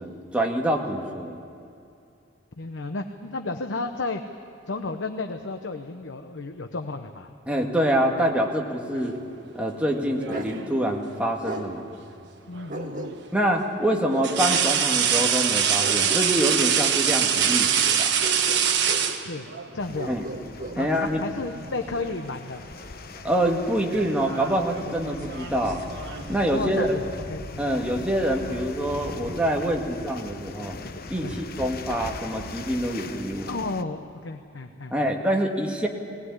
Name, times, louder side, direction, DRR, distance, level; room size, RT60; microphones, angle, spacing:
voice 1, 0.0-1.4 7.5-9.2 9.6-11.9 13.3-18.1 20.1-20.2 20.8-21.2 23.2-25.8 26.3-27.0 27.6-30.8 31.1-33.5 34.9-35.9, right 1 dB, 5° right, 0 dB, 1.9 m, -26 dB
voice 2, 2.6-4.2 4.7-7.3 8.9-9.1 12.5-13.1 19.2-19.5 19.7-20.2 20.8-22.7 26.5-27.8 31.2-31.7 33.5-35.1, left 3 dB, 85° left, 6 dB, 0.9 m, -33 dB
sound 1, 9.9-10.8 12.5-12.7 14.2-19.7 20.9-21.1 21.5-22.3 22.5-22.9 23.8-26.4, right 8 dB, 65° right, 1.3 m, -25 dB
Bark, 10.3-10.6 11.4-11.7 12.7-13.4 14.1-14.6 15.8-16.9 18.2-19.1 19.9-20.8, right 2 dB, 45° right, 2.0 m, -34 dB
sound 2, 19.8-33.8, left 3 dB, 55° left, 0.9 m, -40 dB
19.5 x 18.5 x 9.8 m, 2.6 s
head